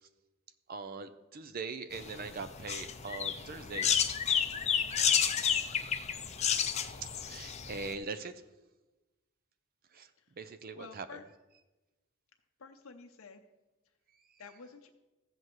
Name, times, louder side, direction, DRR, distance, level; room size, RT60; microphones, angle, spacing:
voice 1, 0.7-3.9 7.0-8.3 9.9-10.1 10.4-11.3, right 4 dB, 45° right, 11 dB, 0.5 m, -41 dB
sound 1, 1.9-7.9, left 8 dB, 30° left, 0.5 m, -31 dB
voice 2, 10.7-11.2 12.6-13.4 14.4-14.9, left 5 dB, 75° left, 4 dB, 0.7 m, -50 dB
14.5 x 7.8 x 3.1 m, 1.1 s
head